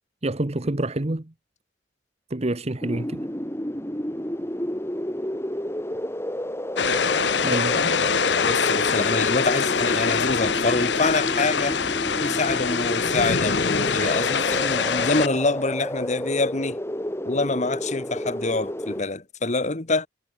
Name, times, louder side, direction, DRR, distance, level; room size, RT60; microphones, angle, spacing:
voice 1, 0.2-1.3 2.3-3.3 7.4-8.0 14.0-14.2, right 1 dB, 35° right, 1.1 m, -27 dB
sound 1, 2.8-19.0, equal, 15° left, 3.9 m, -31 dB
sound 2, 6.8-15.3, left 6 dB, 70° left, 1.1 m, -24 dB
voice 2, 8.3-11.8 12.2-16.8 17.2-20.1, left 3 dB, 40° left, 1.5 m, -26 dB
head